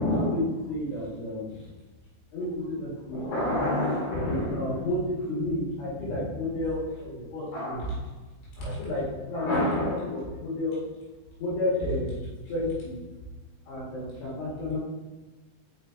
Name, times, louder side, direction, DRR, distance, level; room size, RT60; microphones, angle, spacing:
voice 1, 0.0-1.6 2.3-8.0 8.6-10.8 11.4-12.2 12.5-13.0 13.7-14.8, left 1 dB, 75° left, -7 dB, 4.1 m, -29 dB
6.3 x 5.9 x 3.4 m, 1.2 s
omnidirectional pair, 4.8 m